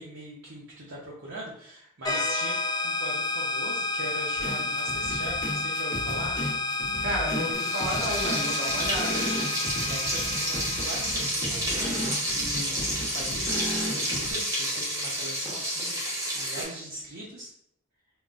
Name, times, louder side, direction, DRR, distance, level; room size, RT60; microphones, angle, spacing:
voice 1, 0.0-2.6 2.8-6.3 9.9-12.0 12.3-16.0 16.3-17.5, right 1 dB, 65° right, -5 dB, 0.6 m, -40 dB
sound 1, 2.0-11.4, left 3 dB, 20° left, 0.4 m, -30 dB
sound 2, 4.4-14.3, equal, 45° left, 0.8 m, -35 dB
voice 2, 7.0-9.3, right 1 dB, 85° right, -3 dB, 0.9 m, -32 dB
Frying (food), 7.5-16.6, equal, 15° right, 0.7 m, -30 dB
3.6 x 2.1 x 2.4 m, 0.72 s
head